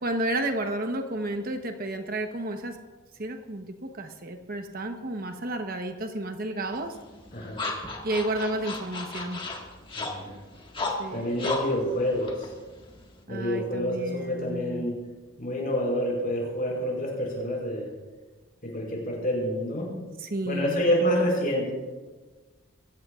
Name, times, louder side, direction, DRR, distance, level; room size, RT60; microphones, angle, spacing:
voice 1, 0.0-2.8 3.2-6.9 8.0-9.4 11.0-11.3 13.3-14.8 20.2-20.8, right 1 dB, 45° right, 5 dB, 1.1 m, -31 dB
sound 1, 6.7-13.2, left 2 dB, 25° left, 1.7 m, -36 dB
voice 2, 7.3-7.6 9.9-10.3 11.1-12.5 13.3-15.0 15.4-17.9 18.6-20.0 20.5-21.7, equal, 45° left, -2 dB, 5.4 m, -28 dB
23.0 x 15.5 x 2.5 m, 1.3 s
head